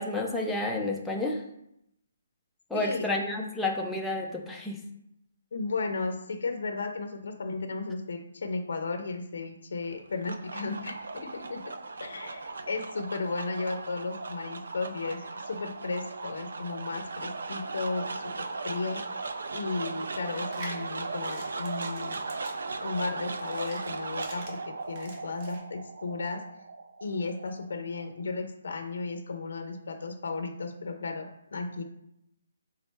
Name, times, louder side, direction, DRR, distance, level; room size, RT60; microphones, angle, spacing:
voice 1, 0.0-1.4 2.7-4.8, left 2 dB, ahead, -2 dB, 0.4 m, -30 dB
voice 2, 2.7-3.1 5.5-11.7 12.0-19.2 19.5-22.2 22.8-26.4 27.0-31.8, left 3 dB, 60° left, 5 dB, 0.5 m, -34 dB
sound 1, 9.9-28.3, right 3 dB, 70° right, 0.5 m, -38 dB
sound 2, 20.3-25.6, right 1 dB, 25° right, 0.9 m, -47 dB
4.1 x 3.7 x 3.4 m, 0.80 s
hypercardioid pair, 175°, 0 cm